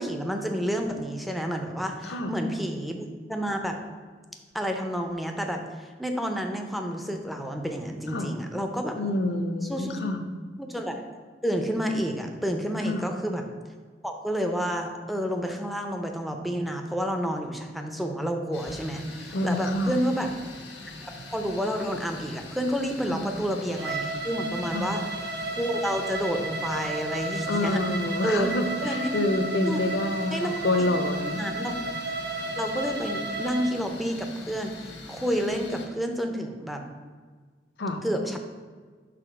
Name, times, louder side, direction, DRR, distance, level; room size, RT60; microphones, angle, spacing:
voice 1, 0.0-3.8 4.5-9.1 9.7-10.0 10.6-11.1 11.4-13.4 14.0-20.3 21.0-25.0 25.5-27.8 28.2-28.5 28.8-29.3 29.6-29.8 30.3-30.6 31.3-31.7 32.6-36.8 38.0-38.4, equal, ahead, 3 dB, 0.5 m, -30 dB
voice 2, 8.9-10.2 12.9-13.1 19.3-20.0 23.1-23.2 24.7-24.9 27.5-31.4 37.8-38.0, left 1 dB, 65° left, 6 dB, 0.6 m, -27 dB
sound 1, 18.5-35.9, left 2 dB, 90° left, 1.1 m, -43 dB
Bowed string instrument, 23.7-33.8, right 2 dB, 60° right, 0.7 m, -33 dB
5.0 x 4.0 x 5.8 m, 1.5 s
head